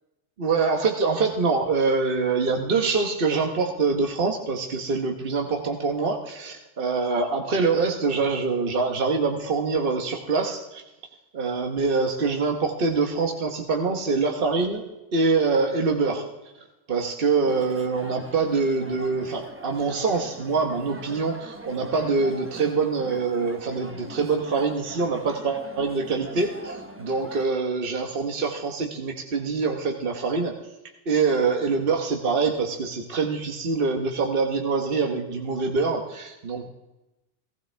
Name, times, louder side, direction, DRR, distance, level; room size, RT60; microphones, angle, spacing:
voice 1, 0.4-10.8 11.3-14.9 15.1-16.2 16.9-30.6 31.1-36.7, right 4 dB, 55° right, 2 dB, 1.3 m, -25 dB
sound 1, 17.5-27.4, right 1 dB, 10° right, 0.9 m, -42 dB
18.0 x 15.5 x 3.4 m, 0.98 s
omnidirectional pair, 1.2 m